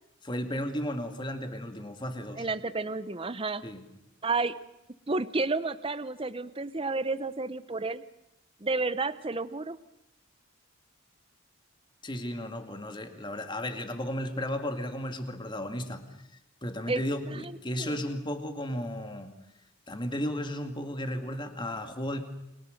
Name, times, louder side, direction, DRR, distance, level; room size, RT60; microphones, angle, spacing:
voice 1, 0.2-2.5 3.6-3.8 12.0-16.0 16.6-19.3 19.9-22.2, left 1 dB, 25° left, 7 dB, 2.2 m, -34 dB
voice 2, 2.4-3.6 4.2-4.5 5.1-8.0 8.6-9.8 16.9-17.0 17.3-17.5 17.8-18.0, right 3 dB, 25° right, 14 dB, 0.8 m, -31 dB
30.0 x 23.0 x 6.6 m, 0.85 s
head